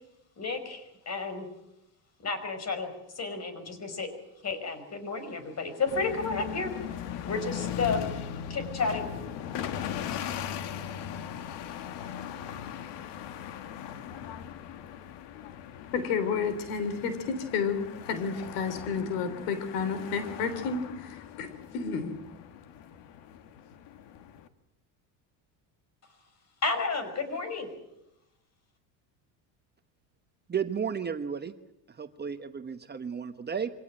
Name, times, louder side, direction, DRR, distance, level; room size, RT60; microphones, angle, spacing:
voice 1, 0.4-1.5 2.2-4.1 4.4-6.7 7.2-8.1 8.5-9.1 26.6-27.7, left 4 dB, 35° left, 10 dB, 5.2 m, -32 dB
sound 1, 5.9-24.5, left 9 dB, 65° left, 1.9 m, -39 dB
voice 2, 15.9-22.2, left 5 dB, 90° left, 11 dB, 3.4 m, -31 dB
voice 3, 30.5-31.5 32.0-33.7, right 7 dB, 20° right, 8 dB, 1.1 m, -33 dB
25.0 x 17.5 x 8.9 m, 0.87 s
supercardioid pair, 120°, 46 cm